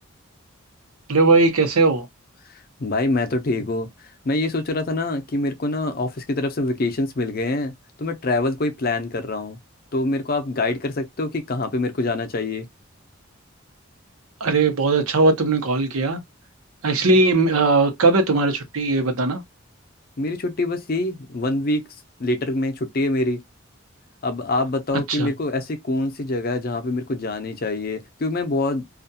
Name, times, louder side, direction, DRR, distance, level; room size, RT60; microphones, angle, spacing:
voice 1, 1.1-2.1 14.4-16.2 16.8-19.4 25.1-25.3, right 3 dB, 85° right, 0.8 m, -19 dB
voice 2, 2.8-3.9 4.2-7.7 8.0-9.6 9.9-12.7 17.0-17.1 20.2-21.9 22.2-23.4 24.2-28.9, left 2 dB, 45° left, 0.5 m, -25 dB
2.4 x 2.3 x 2.6 m
head